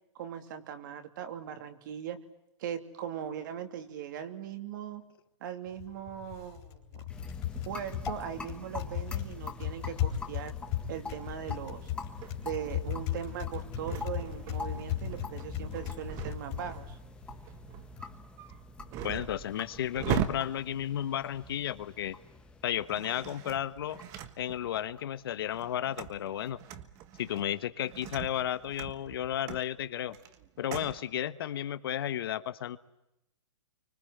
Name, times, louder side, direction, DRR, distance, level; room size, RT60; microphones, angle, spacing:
voice 1, 0.1-2.2 2.6-5.0 5.4-7.0 7.7-10.5 10.9-11.9 12.4-17.0, right 9 dB, 40° right, 8 dB, 2.8 m, -39 dB
Typing, 5.7-18.1, left 11 dB, 25° left, 3.9 m, -37 dB
sound 1, 7.1-26.3, left 3 dB, 5° left, 1.4 m, -46 dB
sound 2, 12.2-22.0 22.7-24.9 25.4-31.0, right 10 dB, 20° right, 1.4 m, -41 dB
voice 2, 19.0-22.2 22.6-24.0 24.4-26.6 27.2-30.2 30.6-32.8, left 11 dB, 50° left, 13 dB, 1.3 m, -33 dB
28.0 x 25.0 x 8.1 m, 0.87 s
hypercardioid pair, 165°, 15 cm